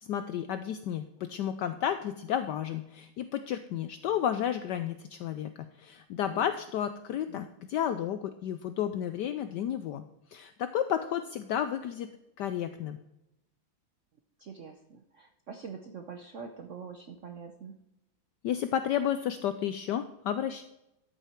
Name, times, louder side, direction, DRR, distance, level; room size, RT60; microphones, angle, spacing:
voice 1, 0.0-5.5 5.8-10.0 10.3-12.1 12.4-13.0 18.4-20.6, left 10 dB, 85° left, 10 dB, 0.9 m, -32 dB
voice 2, 14.4-17.8, right 6 dB, 80° right, 5 dB, 0.6 m, -44 dB
13.0 x 7.0 x 4.4 m, 0.88 s
omnidirectional pair, 2.4 m